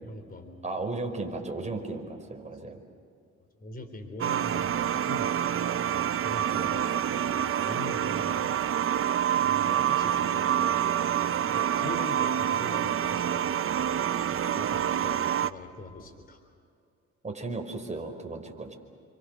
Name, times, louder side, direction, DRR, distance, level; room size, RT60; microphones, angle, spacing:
voice 1, 0.0-0.8 1.9-2.0 3.6-5.3 6.2-6.9 7.3-8.6 9.4-13.6 14.3-16.4, left 2 dB, 30° left, 5 dB, 3.9 m, -42 dB
voice 2, 0.6-2.8 17.2-18.8, right 3 dB, 25° right, 3 dB, 5.2 m, -35 dB
sound 1, 4.2-15.5, right 10 dB, 45° right, 0.8 m, -27 dB
29.5 x 25.0 x 6.7 m, 2.4 s
cardioid pair, 90°, 30 cm